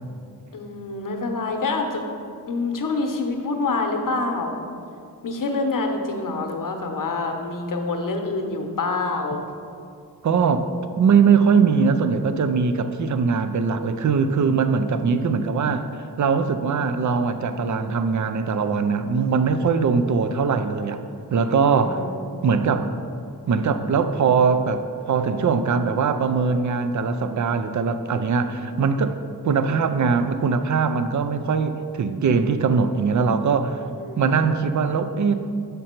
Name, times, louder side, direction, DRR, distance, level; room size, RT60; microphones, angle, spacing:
voice 1, 0.5-2.0 2.5-4.6 5.2-9.4 21.7-22.4 33.9-34.4, left 3 dB, 55° left, 4 dB, 0.9 m, -26 dB
voice 2, 10.2-10.7 11.0-15.9 16.2-21.0 21.3-22.0 22.4-22.9 23.5-29.2 29.4-33.8 34.2-35.3, right 5 dB, 50° right, 10 dB, 0.5 m, -21 dB
6.4 x 5.2 x 4.4 m, 2.4 s
cardioid pair, 70°, 38 cm